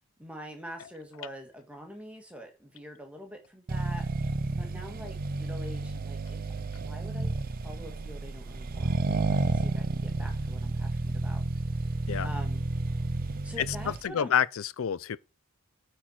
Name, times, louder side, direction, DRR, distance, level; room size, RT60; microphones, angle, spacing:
voice 1, 0.2-4.1 4.5-6.4 6.8-7.3 7.6-11.4 12.2-12.6 13.4-14.3, equal, 5° right, 1.6 m, -45 dB
Accelerating revving vroom, 3.7-14.1, right 3 dB, 40° right, 0.5 m, -31 dB
voice 2, 13.6-15.2, left 8 dB, 65° left, 0.4 m, -28 dB
8.8 x 4.4 x 4.3 m
head